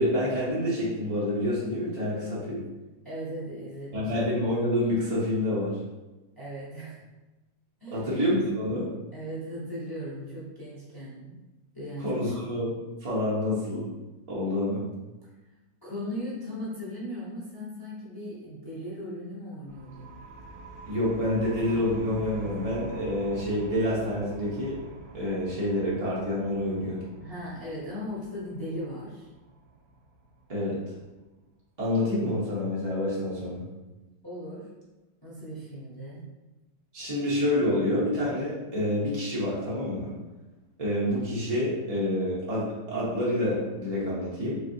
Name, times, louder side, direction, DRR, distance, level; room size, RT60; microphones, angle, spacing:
voice 1, 0.0-2.6 3.9-5.8 7.9-8.9 12.0-12.7 13.0-13.9 14.3-14.8 20.9-24.8 25.1-27.0 30.5-30.8 31.8-33.6 36.9-40.1 40.8-44.6, left 1 dB, 40° right, -7 dB, 0.5 m, -27 dB
voice 2, 3.0-4.1 6.4-7.0 7.8-8.1 9.1-11.3 11.7-12.2 15.4-15.5 15.8-20.2 27.2-29.3 34.2-34.7 35.2-36.3, equal, 20° left, -8 dB, 0.5 m, -38 dB
sound 1, 19.7-31.1, right 2 dB, 80° right, 1.3 m, -45 dB
3.7 x 3.5 x 2.7 m, 1.1 s
omnidirectional pair, 2.0 m